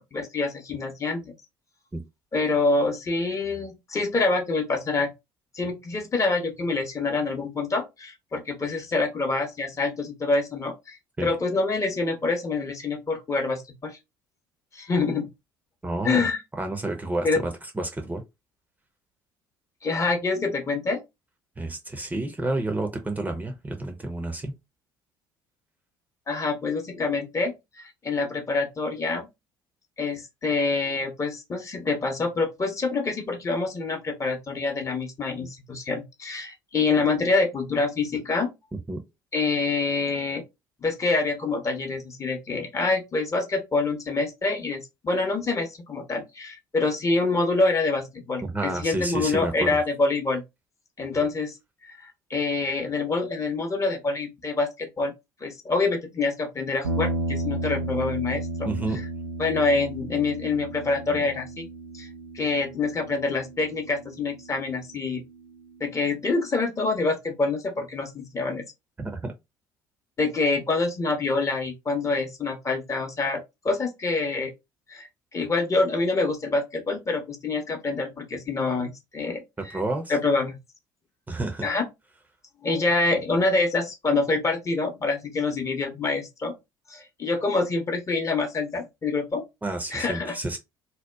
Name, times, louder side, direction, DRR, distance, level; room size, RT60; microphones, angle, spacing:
voice 1, 0.0-1.3 2.3-5.1 5.5-11.0 11.2-14.0 14.7-15.3 16.0-16.4 17.2-17.4 19.8-21.0 26.3-29.3 30.0-38.5 39.3-40.4 40.8-50.4 51.0-51.6 52.0-55.1 55.4-58.7 59.4-61.7 61.9-62.1 62.3-65.2 65.8-68.6 70.2-74.5 74.9-79.8 80.1-80.6 81.6-81.8 82.6-86.5 86.9-89.4 89.9-90.4, left 3 dB, 25° left, 0.7 m, -26 dB
voice 2, 15.8-16.3 16.6-17.5 17.8-18.2 21.6-24.5 38.9-39.0 48.4-49.7 58.6-59.0 69.0-69.3 79.7-80.1 81.3-81.7 89.6-90.6, right 2 dB, 15° right, 0.6 m, -30 dB
sound 1, 56.8-65.2, right 1 dB, 85° right, 0.4 m, -33 dB
2.8 x 2.1 x 2.2 m
figure-of-eight pair, 55°, 11 cm